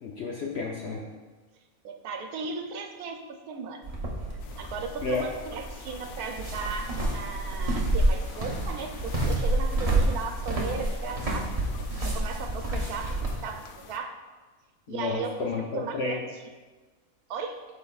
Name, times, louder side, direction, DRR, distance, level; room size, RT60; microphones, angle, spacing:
voice 1, 0.0-1.0 5.0-5.3 14.9-16.3, left 3 dB, 60° left, -1 dB, 0.7 m, -31 dB
voice 2, 1.8-3.8 4.6-11.5 12.0-14.2 14.9-16.2 17.3-17.6, right 5 dB, 90° right, 5 dB, 1.2 m, -36 dB
sound 1, 3.8-13.4, right 1 dB, 30° right, 0.9 m, -29 dB
sound 2, 4.4-14.0, left 6 dB, 85° left, 1.1 m, -47 dB
12.5 x 4.1 x 2.4 m, 1.3 s
omnidirectional pair, 1.5 m